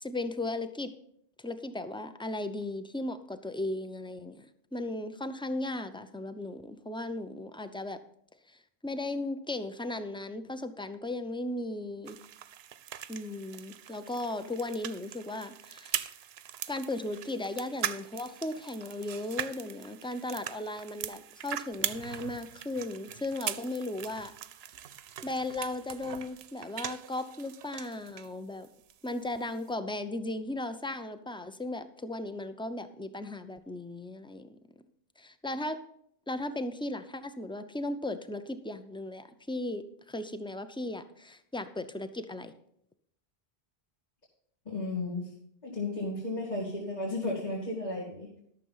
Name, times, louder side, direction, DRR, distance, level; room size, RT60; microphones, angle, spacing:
voice 1, 0.0-0.9 1.4-4.5 4.7-8.0 8.5-12.2 13.1-16.1 16.7-24.3 25.2-28.7 29.0-34.6 35.2-35.8 36.3-39.8 40.1-42.5, left 2 dB, 5° left, 10 dB, 0.5 m, -36 dB
sound 1, 12.1-28.3 28.6-29.7, right 10 dB, 85° right, 0.8 m, -41 dB
voice 2, 44.6-45.3 45.6-48.4, left 2 dB, 45° left, -6 dB, 2.6 m, -34 dB
12.5 x 6.6 x 5.6 m, 0.70 s
omnidirectional pair, 1.0 m